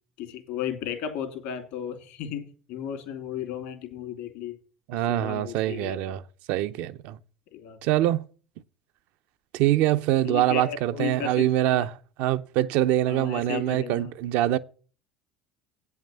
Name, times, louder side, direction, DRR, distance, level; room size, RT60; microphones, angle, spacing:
voice 1, 0.2-4.6 4.9-6.2 7.5-7.8 10.2-11.9 13.0-14.1, left 9 dB, 75° left, 2.7 m, -35 dB
voice 2, 4.9-6.2 6.5-7.2 7.8-8.3 9.5-14.6, right 13 dB, 70° right, 0.6 m, -24 dB
8.7 x 5.7 x 7.6 m
hypercardioid pair, 80°, 3 cm